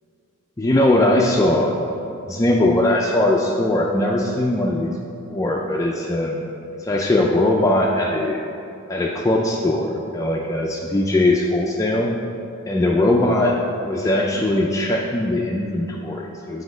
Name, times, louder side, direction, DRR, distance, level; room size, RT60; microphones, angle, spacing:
voice 1, 0.6-1.9 2.3-5.0 5.3-6.5 6.7-8.4 8.9-12.1 12.7-16.6, left 1 dB, 15° left, -1 dB, 0.4 m, -20 dB
6.2 x 4.9 x 5.0 m, 2.7 s
head